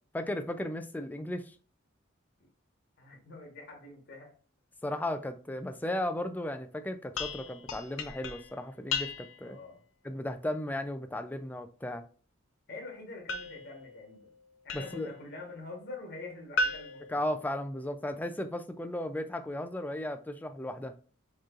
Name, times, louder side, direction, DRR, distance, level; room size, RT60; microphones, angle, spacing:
voice 1, 0.1-1.6 4.8-9.6 10.0-12.0 14.7-15.1 17.1-20.9, left 1 dB, 10° left, 0.3 m, -35 dB
voice 2, 3.0-4.3 9.4-9.8 12.7-14.3 14.6-17.2, left 3 dB, 55° left, 1.2 m, -45 dB
sound 1, 7.2-9.5 13.3-15.2 16.6-18.0, left 3 dB, 75° left, 0.5 m, -37 dB
4.5 x 3.0 x 2.4 m
head